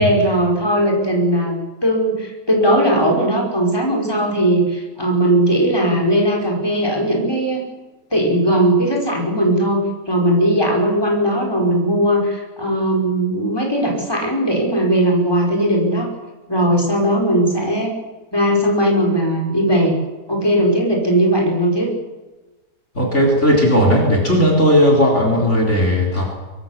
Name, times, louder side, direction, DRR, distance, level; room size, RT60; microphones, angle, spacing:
voice 1, 0.0-1.6 1.8-7.6 8.1-16.1 16.5-17.9 18.3-19.9 20.3-21.9, right 1 dB, 15° left, 0 dB, 5.5 m, -18 dB
voice 2, 23.0-26.3, equal, 45° left, 0 dB, 4.5 m, -15 dB
24.0 x 23.0 x 7.5 m, 1.2 s
omnidirectional pair, 1.7 m